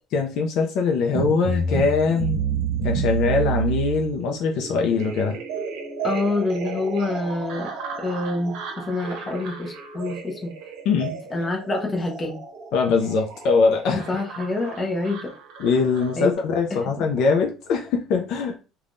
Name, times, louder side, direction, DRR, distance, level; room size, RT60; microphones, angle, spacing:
voice 1, 0.1-2.5 2.8-5.4 10.9-11.1 12.7-14.1 15.6-18.6, left 4 dB, 60° left, 0.4 m, -22 dB
sound 1, 1.1-16.3, right 6 dB, 70° right, 0.7 m, -31 dB
voice 2, 6.0-7.7 8.0-8.6 8.9-10.5 11.3-12.4 14.1-15.3 16.2-16.3, left 2 dB, 20° left, 0.8 m, -26 dB
3.4 x 2.2 x 2.5 m
cardioid pair, 165°, 0 cm